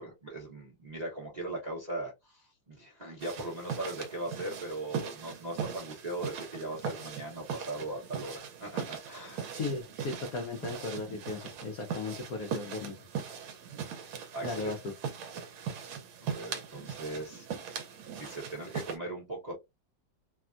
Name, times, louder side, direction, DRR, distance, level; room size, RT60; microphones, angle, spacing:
voice 1, 0.0-9.5 14.3-14.7 16.2-17.5 18.1-19.5, right 2 dB, 35° right, 0.7 m, -39 dB
sound 1, 3.2-19.0, right 7 dB, 75° right, 1.4 m, -40 dB
voice 2, 9.5-13.0 14.4-14.9, left 3 dB, 85° left, 0.7 m, -36 dB
3.4 x 2.2 x 2.4 m
omnidirectional pair, 2.3 m